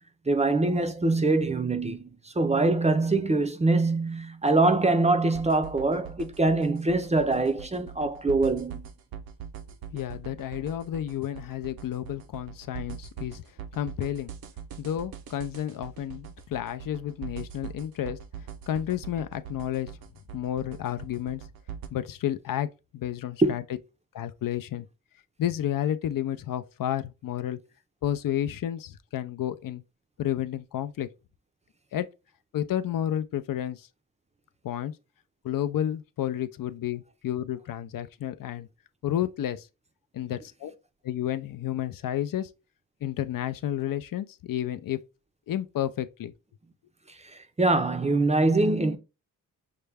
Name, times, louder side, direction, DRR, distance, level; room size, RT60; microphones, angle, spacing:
voice 1, 0.3-2.1 2.4-8.9 23.4-23.6 47.3-49.0, right 2 dB, 20° right, 0.5 m, -24 dB
sound 1, 5.3-21.9, right 8 dB, 85° right, 0.6 m, -42 dB
voice 2, 9.9-13.4 13.7-14.3 14.8-18.2 18.7-19.9 20.3-21.4 21.9-22.7 22.9-23.6 24.1-24.9 25.4-27.6 28.0-29.8 30.2-31.1 31.9-32.1 32.5-33.9 34.6-34.9 35.4-38.7 39.0-39.7 40.1-40.7 41.0-42.5 43.0-45.0 45.5-46.3, left 11 dB, 70° left, 0.5 m, -31 dB
5.8 x 2.1 x 3.3 m
cardioid pair, 85°, 35 cm